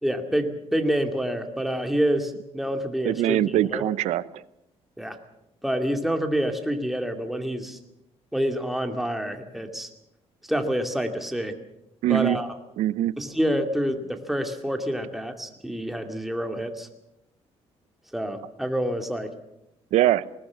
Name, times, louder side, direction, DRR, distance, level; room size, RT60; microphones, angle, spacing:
voice 1, 0.0-3.8 5.0-5.2 5.6-7.8 8.3-9.9 10.5-11.5 12.1-12.5 13.2-16.9 18.1-19.4, equal, ahead, 5 dB, 2.3 m, -27 dB
voice 2, 3.0-4.2 12.0-12.4 12.8-13.1 19.9-20.3, right 13 dB, 85° right, 17 dB, 0.8 m, -22 dB
20.5 x 19.5 x 7.2 m, 0.86 s
cardioid pair, 125°, 11 cm